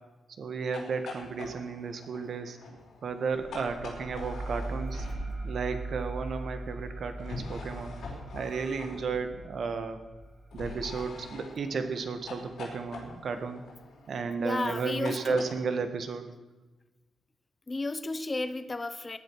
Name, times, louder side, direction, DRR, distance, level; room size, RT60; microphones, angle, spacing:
voice 1, 0.4-2.6 3.0-5.0 5.4-8.0 8.3-10.0 10.5-13.6 14.1-16.3, right 5 dB, 55° right, 8 dB, 1.6 m, -33 dB
sound 1, 0.6-5.6 7.2-9.5 10.5-15.5, left 3 dB, 65° left, 5.0 m, -45 dB
sound 2, 3.3-12.5, right 2 dB, 30° right, 3.6 m, -40 dB
voice 2, 14.4-15.4 17.7-19.2, left 2 dB, 20° left, 13 dB, 0.7 m, -33 dB
18.5 x 10.5 x 6.3 m, 1.2 s
wide cardioid pair, 145°, 0 cm